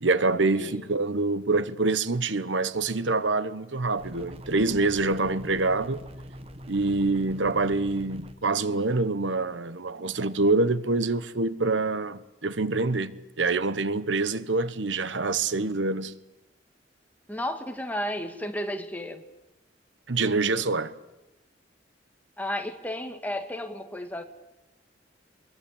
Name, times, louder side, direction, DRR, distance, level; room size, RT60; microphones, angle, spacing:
voice 1, 0.0-6.0 6.7-16.1 20.1-20.9, right 3 dB, 90° right, 1.2 m, -26 dB
sound 1, 4.0-8.4, equal, 35° right, 1.5 m, -43 dB
voice 2, 17.3-19.2 22.4-24.2, left 1 dB, 10° left, 2.1 m, -33 dB
24.0 x 22.5 x 8.7 m
head